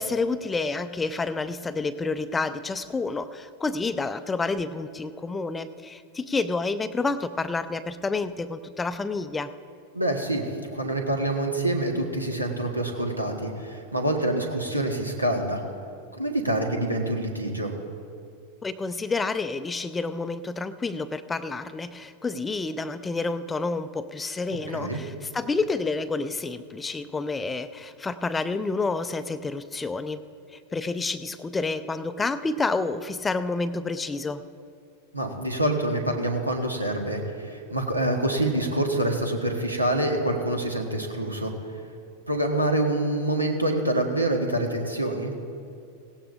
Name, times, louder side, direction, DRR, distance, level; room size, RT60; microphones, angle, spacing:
voice 1, 0.0-9.5 18.6-30.2 30.5-34.4, left 3 dB, 15° left, 12 dB, 0.5 m, -29 dB
voice 2, 9.9-15.6 16.1-17.7 24.7-25.0 35.1-41.5 42.3-45.3, right 1 dB, 85° right, 2 dB, 1.4 m, -26 dB
17.5 x 16.5 x 2.6 m, 2.4 s
figure-of-eight pair, 90°, 0 cm